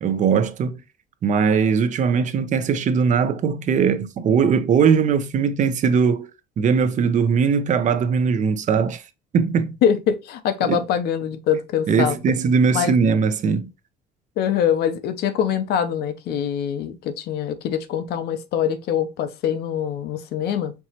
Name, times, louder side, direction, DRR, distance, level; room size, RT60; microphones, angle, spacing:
voice 1, 0.0-0.8 1.2-6.3 6.6-9.0 9.3-9.8 10.7-10.8 11.9-13.7, right 6 dB, 45° right, 0.6 m, -20 dB
voice 2, 9.8-12.2 12.7-12.9 14.4-20.7, left 8 dB, 75° left, 0.6 m, -23 dB
4.5 x 2.9 x 2.8 m
cardioid pair, 110°, 17 cm